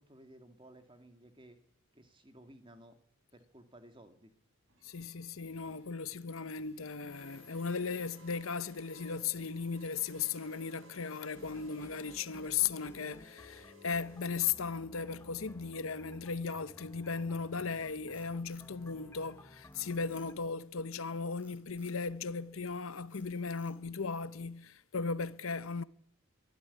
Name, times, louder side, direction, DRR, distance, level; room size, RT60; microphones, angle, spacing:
voice 1, 0.0-1.6 1.9-3.0 3.3-4.3, right 1 dB, 25° right, 2.3 m, -56 dB
sound 1, 4.7-14.2, left 1 dB, 70° right, 5.9 m, -59 dB
voice 2, 4.8-25.8, left 5 dB, 75° left, 0.8 m, -37 dB
sound 2, 11.3-20.3, left 1 dB, 15° left, 0.8 m, -56 dB
Frog, 18.0-19.3 19.7-20.6 21.4-22.0 22.5-22.8 23.1-24.0, equal, 5° right, 5.2 m, -64 dB
23.5 x 12.5 x 9.9 m
head